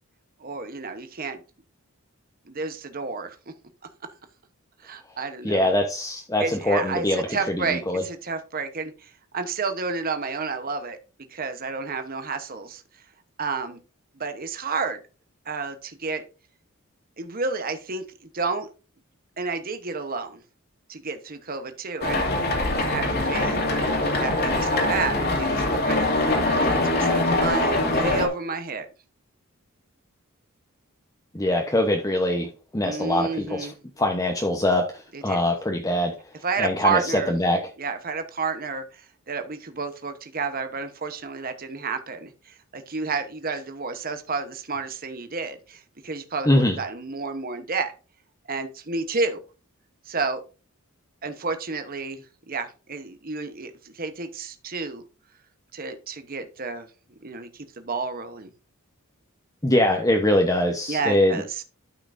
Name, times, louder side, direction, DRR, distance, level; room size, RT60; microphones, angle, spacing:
voice 1, 0.4-1.4 2.5-3.4 4.8-5.7 6.4-11.0 11.3-12.8 13.4-13.8 14.2-15.0 15.5-16.2 17.2-18.1 18.3-18.7 19.4-20.4 20.9-22.2 22.8-28.9 32.8-33.7 35.1-35.4 36.4-37.4 37.8-47.9 48.5-49.4 50.0-50.4 51.2-55.0 55.7-56.9 57.2-58.5 60.9-61.6, right 4 dB, 40° right, 1.0 m, -31 dB
voice 2, 5.4-8.0 31.3-33.7 34.0-36.2 36.6-37.0 37.3-37.7 46.4-46.8 59.6-61.4, left 1 dB, 15° left, 0.9 m, -23 dB
sound 1, 22.0-28.3, left 2 dB, 45° left, 2.3 m, -23 dB
12.5 x 5.9 x 2.6 m
head